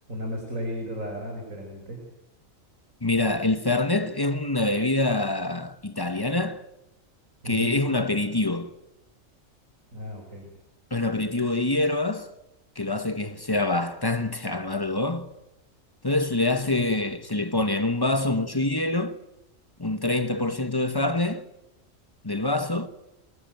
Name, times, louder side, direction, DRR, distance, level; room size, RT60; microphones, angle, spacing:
voice 1, 0.1-2.0 7.4-7.8 9.9-10.5, equal, 75° right, 5.3 m, -34 dB
voice 2, 3.0-6.7 7.4-8.7 10.9-12.3 12.8-15.3 16.0-19.2 19.8-21.4 22.2-22.9, left 2 dB, 20° left, 1.1 m, -25 dB
26.0 x 20.0 x 9.2 m
omnidirectional pair, 1.4 m